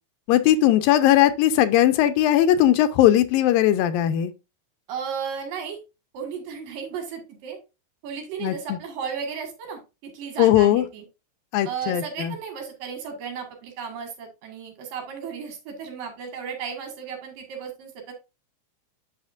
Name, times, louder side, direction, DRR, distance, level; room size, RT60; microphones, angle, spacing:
voice 1, 0.3-4.3 8.4-8.8 10.4-10.9 11.5-12.3, left 12 dB, 85° left, 2.4 m, -19 dB
voice 2, 4.9-5.8 6.1-7.6 8.0-11.1 11.6-18.1, right 6 dB, 70° right, 3.4 m, -34 dB
8.6 x 6.4 x 2.5 m
omnidirectional pair, 4.1 m